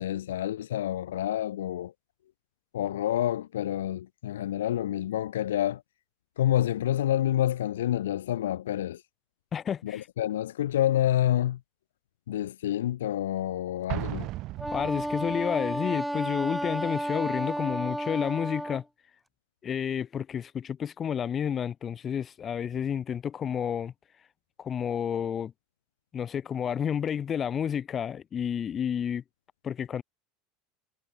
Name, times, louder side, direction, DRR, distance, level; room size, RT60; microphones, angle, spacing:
voice 1, 0.0-1.9 2.7-5.8 6.4-9.0 9.8-11.6 12.3-14.3, left 12 dB, 90° left, 1.1 m, -28 dB
voice 2, 9.5-10.1 14.7-18.8 19.6-23.9 24.6-25.5 26.1-29.2 29.6-30.0, left 8 dB, 35° left, 3.9 m, -30 dB
Explosion, 13.9-15.6, right 17 dB, 55° right, 5.4 m, -36 dB
Wind instrument woodwind instrument, 14.6-18.8, equal, ahead, 1.5 m, -32 dB
hypercardioid pair, 95°, 0 cm